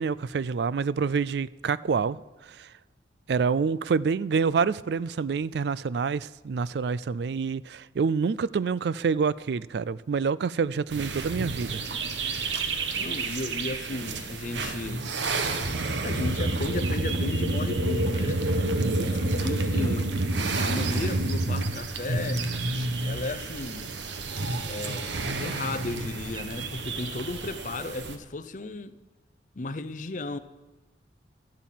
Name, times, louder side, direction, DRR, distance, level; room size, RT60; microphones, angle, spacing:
voice 1, 0.0-2.2 2.5-2.7 3.3-11.8 18.8-19.1, right 5 dB, 70° right, 0.4 m, -27 dB
sound 1, 10.9-28.2, right 2 dB, 90° right, 1.2 m, -29 dB
voice 2, 13.0-15.1 16.0-18.4 18.9-20.2 20.6-22.5 23.0-23.9 24.6-29.0 29.5-30.4, left 2 dB, 45° left, 0.6 m, -34 dB
12.0 x 11.5 x 7.6 m
head